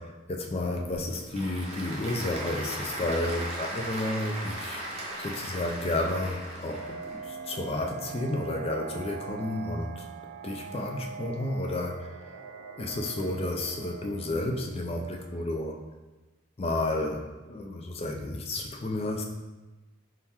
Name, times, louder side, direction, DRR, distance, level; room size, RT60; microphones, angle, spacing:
voice 1, 0.0-4.8 5.2-10.1 10.4-12.1 12.8-15.8 16.6-19.2, left 1 dB, 25° left, 3 dB, 0.4 m, -31 dB
Applause / Crowd, 0.7-7.2, right 1 dB, 30° right, 0.7 m, -38 dB
sound 1, 6.7-15.5, right 6 dB, 75° right, 0.4 m, -42 dB
4.2 x 3.8 x 2.9 m, 1.2 s
head